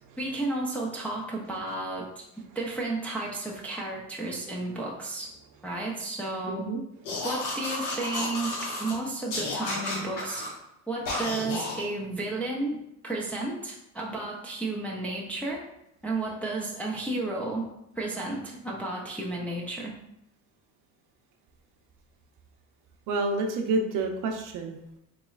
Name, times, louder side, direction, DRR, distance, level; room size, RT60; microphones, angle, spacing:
voice 1, 0.2-2.3 2.5-5.3 5.6-6.7 7.2-10.5 10.9-15.6 16.0-17.7 18.0-19.9, right 2 dB, 5° left, -4 dB, 0.4 m, -32 dB
voice 2, 6.5-6.8 23.1-24.8, right 3 dB, 60° right, 4 dB, 0.6 m, -28 dB
sound 1, 7.0-9.0 9.3-10.5 11.1-11.8, left 2 dB, 55° left, 1.2 m, -32 dB
4.0 x 3.1 x 2.3 m, 0.83 s
cardioid pair, 125°, 37 cm